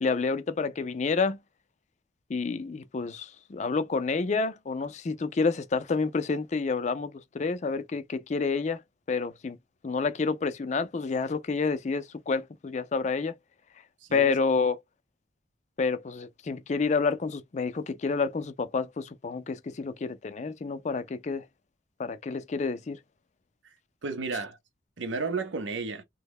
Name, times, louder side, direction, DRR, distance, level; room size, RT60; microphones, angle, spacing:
voice 1, 0.0-1.4 2.3-8.8 9.1-9.6 9.8-13.3 14.1-14.8 15.8-21.4 22.0-23.0, left 4 dB, 40° left, 0.4 m, -29 dB
voice 2, 14.0-14.3 23.6-23.7 24.0-24.6 25.0-26.0, right 4 dB, 80° right, 0.6 m, -33 dB
3.0 x 2.1 x 3.5 m
head